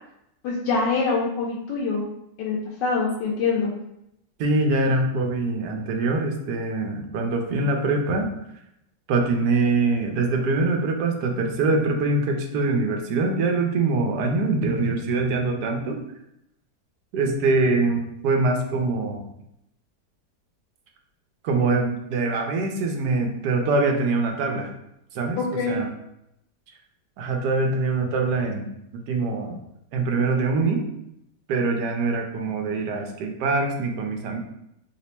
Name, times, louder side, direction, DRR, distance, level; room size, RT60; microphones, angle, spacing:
voice 1, 0.4-2.0 2.4-3.7 25.4-25.8, left 4 dB, 85° left, -3 dB, 1.3 m, -24 dB
voice 2, 4.4-8.3 9.1-16.0 17.1-19.2 21.4-24.7 25.1-25.4 25.7-25.9 27.2-28.7 29.1-29.6 29.9-30.8 31.5-34.4, right 3 dB, 75° right, 3 dB, 1.1 m, -23 dB
3.3 x 2.0 x 4.2 m, 0.79 s
omnidirectional pair, 1.9 m